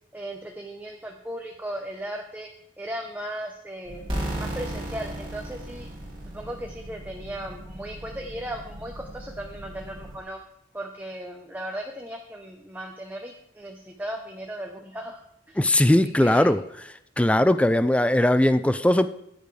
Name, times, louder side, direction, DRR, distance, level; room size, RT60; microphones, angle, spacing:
voice 1, 0.1-2.5 2.8-4.0 4.3-5.9 6.3-10.4 10.7-15.2 15.5-15.7 16.2-16.5, right 1 dB, 10° right, 0.8 m, -36 dB
sound 1, 3.8-10.2, equal, 45° right, 1.4 m, -42 dB
sound 2, 4.1-6.8, right 1 dB, 25° right, 2.5 m, -33 dB
voice 2, 15.6-16.6 17.2-19.1, left 1 dB, 5° left, 0.4 m, -19 dB
13.5 x 9.1 x 3.3 m
head